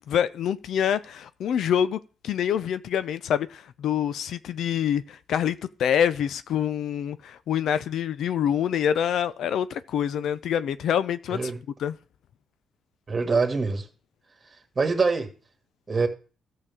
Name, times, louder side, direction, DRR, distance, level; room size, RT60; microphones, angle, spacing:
voice 1, 0.1-11.4 11.8-12.0, left 9 dB, 70° left, 0.5 m, -26 dB
voice 2, 13.1-13.8 14.8-15.3 15.9-16.1, right 4 dB, 30° right, 2.1 m, -24 dB
13.5 x 6.6 x 3.7 m
cardioid pair, 90°, 0 cm